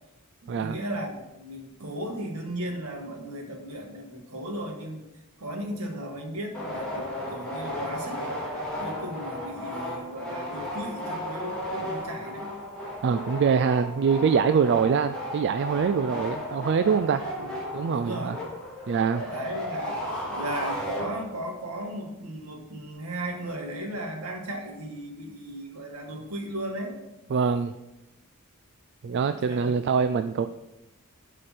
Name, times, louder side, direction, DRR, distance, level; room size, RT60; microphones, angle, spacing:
voice 1, 0.4-5.1 5.4-8.4 8.8-12.6 14.5-14.6 17.4-17.5 17.9-18.4 19.3-20.0 20.3-27.0 29.1-29.7, right 1 dB, 75° right, 2 dB, 1.7 m, -36 dB
sound 1, 6.5-21.5, equal, 5° left, 2.8 m, -34 dB
voice 2, 13.0-17.2 17.7-18.4 18.9-19.2 27.3-27.7 29.0-30.5, right 6 dB, 50° right, 10 dB, 0.3 m, -24 dB
11.5 x 5.0 x 4.3 m, 0.95 s
head